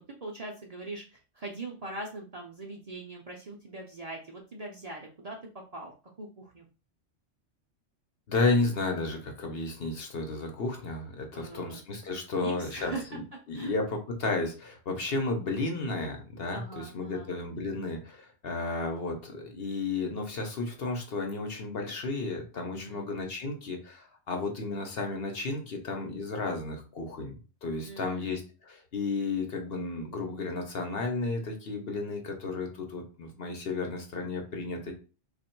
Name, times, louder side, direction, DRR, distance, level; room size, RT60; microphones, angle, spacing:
voice 1, 0.0-5.9 6.2-6.7 11.3-11.8 12.3-13.2 13.5-13.7 16.5-17.3 22.7-23.1 27.8-28.4, right 2 dB, 40° right, -2 dB, 0.6 m, -41 dB
voice 2, 8.3-12.9 13.5-27.3 27.6-34.9, left 3 dB, 55° left, 3 dB, 1.0 m, -33 dB
3.0 x 2.5 x 4.4 m, 0.34 s
omnidirectional pair, 1.3 m